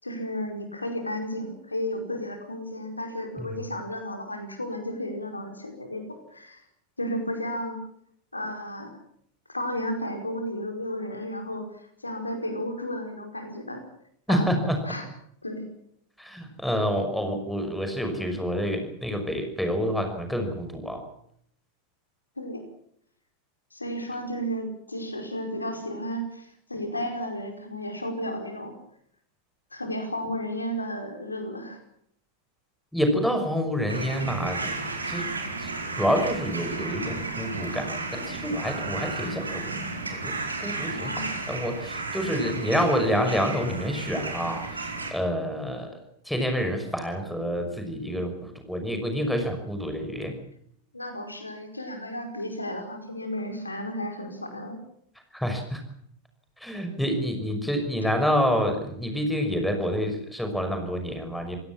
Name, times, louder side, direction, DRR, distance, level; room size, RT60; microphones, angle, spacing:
voice 1, 0.0-6.0 6.3-6.6 7.0-7.8 8.3-8.9 9.5-13.8 14.3-14.5 14.8-15.1 15.4-15.7 22.4-22.6 23.7-28.8 29.7-31.8 40.9-41.3 50.9-54.8, equal, 80° left, 5 dB, 5.0 m, -33 dB
voice 2, 14.3-14.8 16.2-21.0 32.9-34.7 35.0-35.3 35.6-35.7 36.0-39.7 40.2-40.3 40.6-41.1 41.5-44.6 45.1-46.0 46.3-50.3 55.3-55.8 56.6-61.6, equal, ahead, 5 dB, 6.0 m, -27 dB
sound 1, 33.9-45.1, right 3 dB, 80° right, 4.6 m, -33 dB
28.0 x 17.5 x 7.4 m, 0.68 s
figure-of-eight pair, 90°, 0 cm